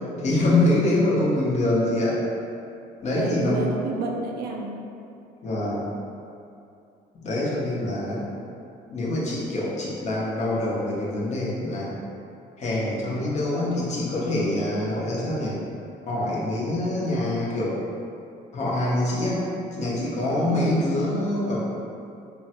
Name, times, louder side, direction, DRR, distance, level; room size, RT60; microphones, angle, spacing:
voice 1, 0.2-2.2 3.0-3.6 5.4-5.9 7.2-8.2 8.9-12.0 12.6-15.6 16.1-17.8 18.5-19.4 19.7-21.6, left 1 dB, 45° left, -6 dB, 0.7 m, -25 dB
voice 2, 3.2-4.7 20.4-20.9, right 3 dB, 65° right, 0 dB, 0.4 m, -30 dB
3.1 x 2.1 x 2.9 m, 2.6 s
cardioid pair, 110°, 17 cm